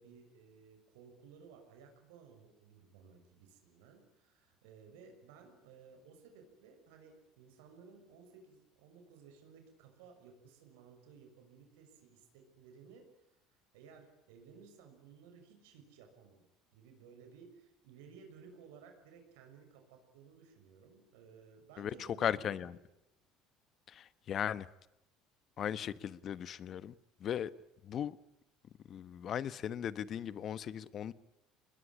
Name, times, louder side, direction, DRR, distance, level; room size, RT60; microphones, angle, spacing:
voice 1, 0.0-16.5 16.7-22.7 25.8-25.9, right 6 dB, 90° right, 6.5 m, -58 dB
voice 2, 21.8-22.7 23.9-24.7 25.6-26.9 27.2-27.5 27.8-28.2 28.9-31.1, left 9 dB, 45° left, 1.1 m, -37 dB
23.0 x 20.5 x 9.9 m
supercardioid pair, 105°, 0 cm